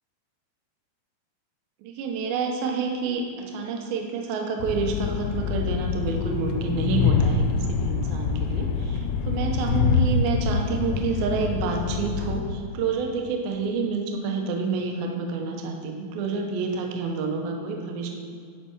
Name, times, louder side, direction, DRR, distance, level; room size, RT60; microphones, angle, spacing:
voice 1, 1.8-18.1, right 4 dB, 70° right, 2 dB, 2.5 m, -28 dB
Train, 4.6-12.4, left 5 dB, 90° left, 2.8 m, -25 dB
10.0 x 5.9 x 4.5 m, 2.3 s
omnidirectional pair, 5.0 m